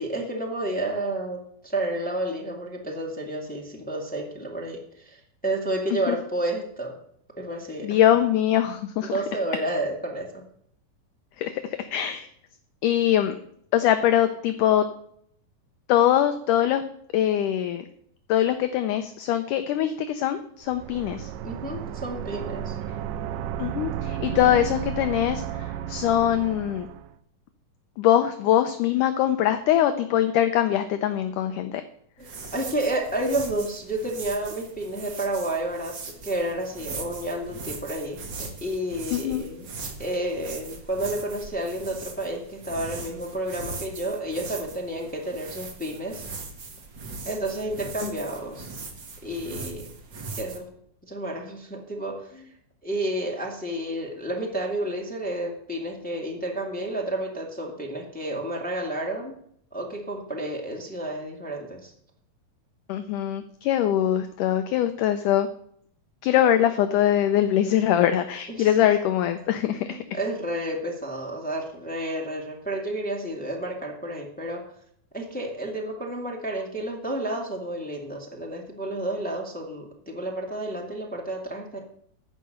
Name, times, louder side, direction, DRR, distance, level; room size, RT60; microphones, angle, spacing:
voice 1, 0.0-6.9 7.4-8.0 9.0-10.4 21.4-22.7 32.2-39.7 40.0-46.3 47.2-48.7 49.2-49.9 50.4-50.7 51.0-52.5 52.8-59.3 59.7-61.9 68.5-68.9 69.7-74.6 75.1-81.8, right 1 dB, 10° left, -1 dB, 0.4 m, -31 dB
voice 2, 7.8-9.2 11.4-12.3 12.8-13.4 13.7-14.9 15.9-16.8 17.1-17.9 18.3-21.3 23.6-26.9 28.0-31.8 39.1-39.4 48.0-48.1 62.9-65.5 66.2-70.0, left 11 dB, 75° left, 8 dB, 1.9 m, -22 dB
sound 1, 20.6-27.1, right 10 dB, 80° right, 2.1 m, -33 dB
sound 2, 32.2-50.6, right 3 dB, 55° right, 1.2 m, -40 dB
14.0 x 5.3 x 7.7 m, 0.67 s
omnidirectional pair, 4.4 m